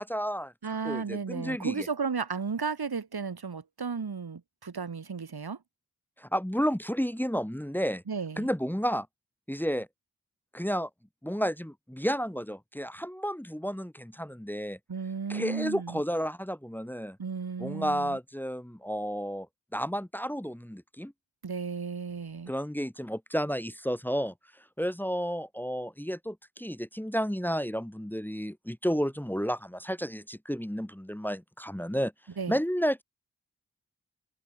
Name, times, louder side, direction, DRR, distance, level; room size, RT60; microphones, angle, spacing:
voice 1, 0.0-0.5 0.8-1.9 6.2-8.0 8.4-9.1 9.5-9.9 10.5-10.9 11.2-14.8 15.3-17.2 17.6-19.5 19.7-21.1 22.5-24.3 24.8-32.1 32.5-33.0, equal, 5° left, 1.8 m, -31 dB
voice 2, 0.6-5.6 8.1-8.5 14.9-16.0 17.2-18.2 21.4-22.5 32.4-32.6, right 5 dB, 90° right, 4.4 m, -34 dB
wide cardioid pair, 50°, 37 cm